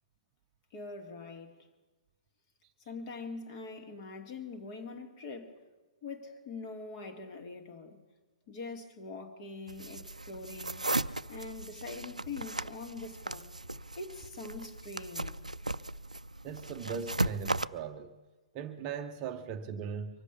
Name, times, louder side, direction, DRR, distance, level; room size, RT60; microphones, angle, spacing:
voice 1, 0.7-1.6 2.9-5.6 6.0-8.0 8.5-10.8 11.3-13.5 14.0-15.4, left 3 dB, 35° left, 2.1 m, -43 dB
sound 1, 9.7-17.7, right 2 dB, 85° right, 0.4 m, -37 dB
voice 2, 16.4-18.1 18.5-20.2, right 6 dB, 25° right, 0.8 m, -39 dB
24.0 x 8.2 x 7.0 m
figure-of-eight pair, 125°, 4 cm